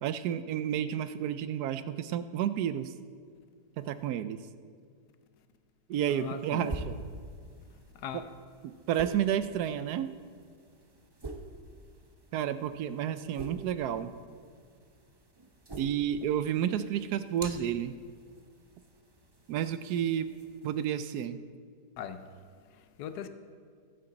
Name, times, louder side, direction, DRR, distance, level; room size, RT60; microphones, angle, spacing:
voice 1, 0.0-2.9 3.8-4.4 5.9-7.0 8.9-10.1 12.3-14.1 15.8-17.9 19.5-20.3 20.6-21.4, right 10 dB, 75° right, 12 dB, 1.1 m, -31 dB
voice 2, 6.1-6.8 7.9-8.3 22.0-22.2 22.6-23.3, left 8 dB, 80° left, 10 dB, 1.3 m, -40 dB
sound 1, 6.1-20.9, right 2 dB, 25° right, 0.6 m, -47 dB
21.5 x 8.9 x 3.9 m, 2.1 s
omnidirectional pair, 1.7 m